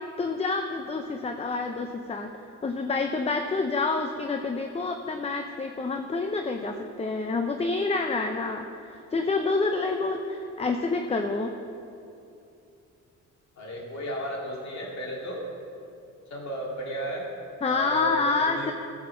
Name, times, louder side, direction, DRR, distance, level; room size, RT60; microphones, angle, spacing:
voice 1, 0.2-2.3 2.6-11.5 17.6-18.7, left 3 dB, 20° left, 5 dB, 0.6 m, -28 dB
voice 2, 13.6-15.4 16.3-17.3 17.7-18.7, equal, 65° left, -3 dB, 3.0 m, -34 dB
11.5 x 7.1 x 6.7 m, 2.7 s
cardioid pair, 90°, 30 cm